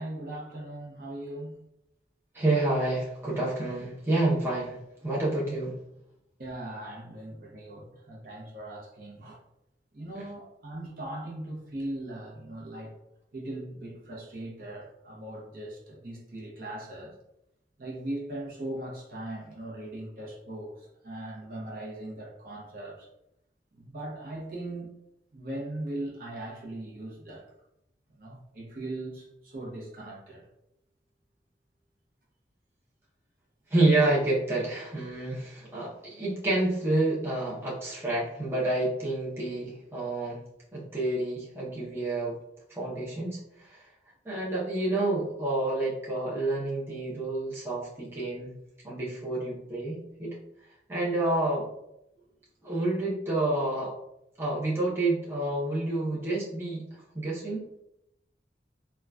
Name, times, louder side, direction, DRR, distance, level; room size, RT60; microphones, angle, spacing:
voice 1, 0.0-1.6 6.4-9.4 9.9-12.9 13.3-17.2 17.8-23.1 23.7-24.9 25.3-27.5 28.1-30.5 52.2-52.3, right 1 dB, 55° right, -3 dB, 0.7 m, -39 dB
voice 2, 2.3-5.7 33.7-40.4 40.7-42.4 42.8-43.4 43.7-43.8 44.2-48.5 48.8-50.4 50.9-51.7 52.6-53.9 54.4-56.8 57.1-57.7, right 2 dB, 15° right, -7 dB, 0.6 m, -28 dB
3.7 x 2.3 x 2.2 m, 0.82 s
head